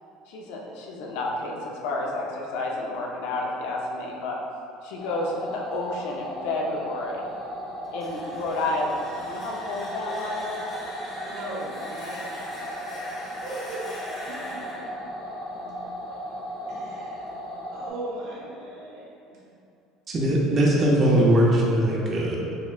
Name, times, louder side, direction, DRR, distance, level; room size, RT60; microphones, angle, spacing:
voice 1, 0.3-4.4 4.8-7.2 7.9-10.7, left 2 dB, 85° left, -2 dB, 0.6 m, -30 dB
sound 1, 5.0-17.9, equal, 60° left, 0.9 m, -36 dB
sound 2, 7.8-16.7, left 1 dB, 25° left, 0.9 m, -42 dB
voice 2, 11.2-13.1 13.4-14.0 14.2-15.1 16.7-17.3 17.7-19.4, right 2 dB, 60° right, -8 dB, 1.4 m, -39 dB
voice 3, 20.1-22.4, right 1 dB, 30° right, -3 dB, 0.6 m, -20 dB
6.3 x 2.2 x 2.4 m, 2.5 s
cardioid pair, 150°, 0 cm